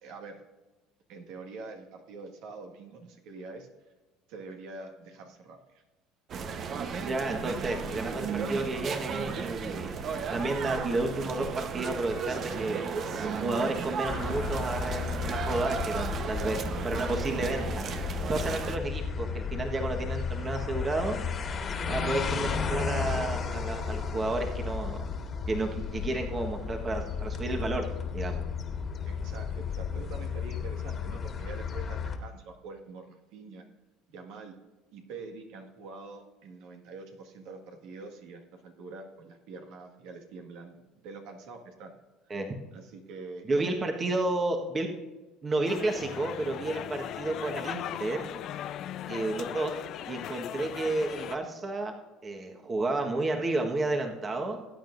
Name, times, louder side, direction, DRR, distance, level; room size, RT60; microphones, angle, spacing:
voice 1, 0.0-0.4 1.1-3.7 4.3-5.8 29.1-33.7 34.1-34.6 34.9-42.0 42.3-42.4 42.7-43.7, right 3 dB, 75° right, 3 dB, 1.8 m, -45 dB
sound 1, 6.3-18.8, right 5 dB, 45° right, 1.0 m, -34 dB
voice 2, 7.0-9.9 10.3-12.9 13.2-16.6 16.8-17.8 18.3-21.2 21.9-25.0 25.5-27.9 28.1-28.4 42.3-42.5 43.5-44.9 45.4-48.3 49.1-49.7 50.1-51.9 52.2-54.6, right 2 dB, 30° right, 3 dB, 1.4 m, -31 dB
sound 2, 14.1-32.2, left 6 dB, 40° left, 1.8 m, -34 dB
sound 3, 45.7-51.4, left 11 dB, 55° left, 0.6 m, -38 dB
19.0 x 9.0 x 2.6 m, 1.2 s
supercardioid pair, 95°, 0 cm